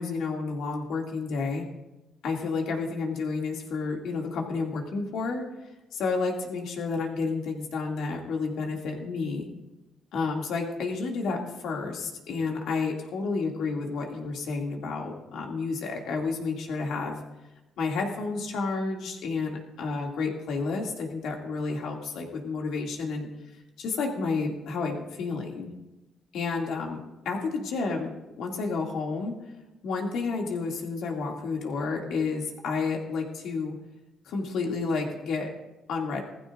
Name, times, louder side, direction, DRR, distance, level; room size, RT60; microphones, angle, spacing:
voice 1, 0.0-1.6 2.2-5.4 5.9-9.5 10.1-17.2 17.8-23.3 23.8-25.7 26.3-27.0 27.2-28.1 28.4-29.3 29.8-33.7 34.3-35.5 35.9-36.2, left 4 dB, 80° left, 0 dB, 2.5 m, -30 dB
20.5 x 15.0 x 2.6 m, 1.0 s
cardioid pair, 90°, 0 cm